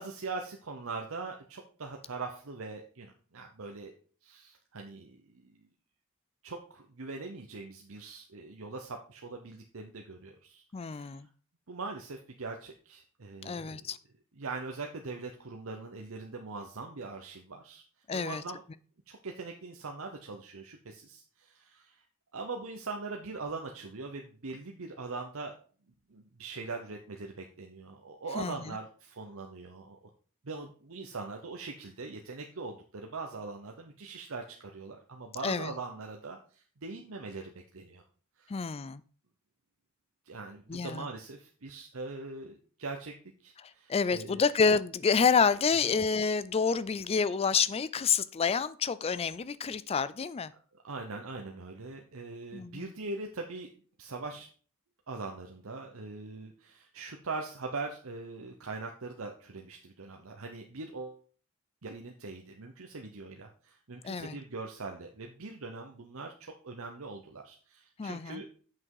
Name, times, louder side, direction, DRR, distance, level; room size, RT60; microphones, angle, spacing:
voice 1, 0.0-3.9 4.2-5.5 6.4-11.2 11.7-13.8 14.3-17.8 18.1-18.6 19.1-22.0 22.3-25.5 26.1-30.1 30.4-38.0 38.4-38.5 40.2-43.1 43.4-44.4 50.8-53.7 54.0-54.5 55.1-61.2 61.8-68.5, right 3 dB, 65° right, 0.9 m, -41 dB
voice 2, 10.7-11.3 13.4-14.0 18.1-18.4 28.4-28.6 35.4-35.7 38.5-39.0 40.7-41.1 43.6-50.5 52.5-52.9 64.0-64.4 68.0-68.4, left 5 dB, 25° left, 0.4 m, -28 dB
7.6 x 6.1 x 4.7 m
head